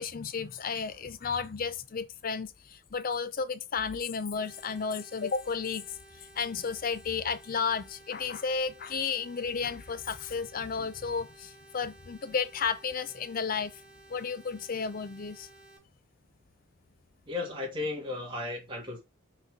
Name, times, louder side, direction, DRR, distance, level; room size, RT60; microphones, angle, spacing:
voice 1, 0.0-5.9 6.4-13.8 14.1-15.5, left 5 dB, 40° left, 0.5 m, -33 dB
sound 1, 4.3-15.8, right 2 dB, 5° right, 2.6 m, -55 dB
voice 2, 17.2-19.0, left 3 dB, 25° right, 2.3 m, -35 dB
6.4 x 4.1 x 3.6 m
head